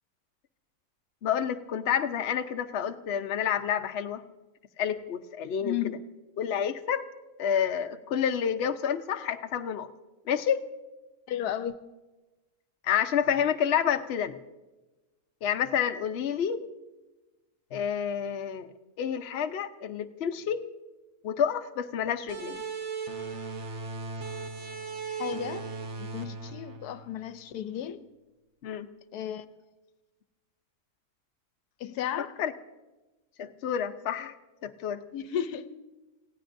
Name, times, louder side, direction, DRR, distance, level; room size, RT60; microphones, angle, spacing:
voice 1, 1.2-4.2 4.8-5.8 6.4-7.0 7.4-9.9 10.3-10.7 12.8-14.4 15.4-16.6 17.7-18.7 19.0-20.6 21.2-22.6 28.6-28.9 32.4-32.5 33.4-34.3 34.6-35.0, left 8 dB, 55° left, 7 dB, 0.8 m, -29 dB
voice 2, 5.6-6.0 11.3-11.8 25.1-25.7 26.0-28.0 29.1-29.4 31.8-32.4 35.1-35.7, left 10 dB, 85° left, 12 dB, 1.2 m, -34 dB
sound 1, 22.3-27.6, right 4 dB, 50° right, 1.3 m, -37 dB
29.5 x 16.0 x 2.6 m, 1.1 s
omnidirectional pair, 1.6 m